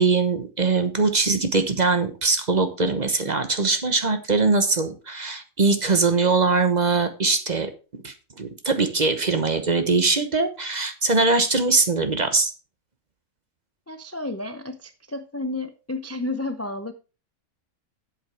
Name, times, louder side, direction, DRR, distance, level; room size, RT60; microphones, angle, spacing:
voice 1, 0.0-7.7 8.0-12.5, right 3 dB, 35° right, 8 dB, 1.0 m, -22 dB
voice 2, 13.9-16.9, left 2 dB, 20° left, 9 dB, 0.4 m, -31 dB
8.1 x 7.8 x 4.6 m, 0.33 s
omnidirectional pair, 1.5 m